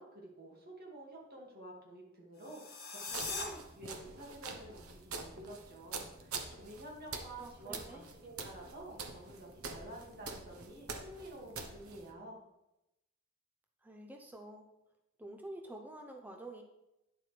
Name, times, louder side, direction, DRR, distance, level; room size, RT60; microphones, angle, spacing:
voice 1, 0.0-12.4, right 1 dB, 45° right, -2 dB, 2.2 m, -50 dB
sound 1, 2.4-3.4, left 4 dB, 65° left, 3.6 m, -41 dB
sound 2, 3.1-12.1, right 4 dB, 85° right, 1.1 m, -46 dB
voice 2, 7.4-8.1 13.8-14.7 15.2-16.6, right 1 dB, 10° right, 2 dB, 0.6 m, -48 dB
10.5 x 7.5 x 3.4 m, 0.91 s
head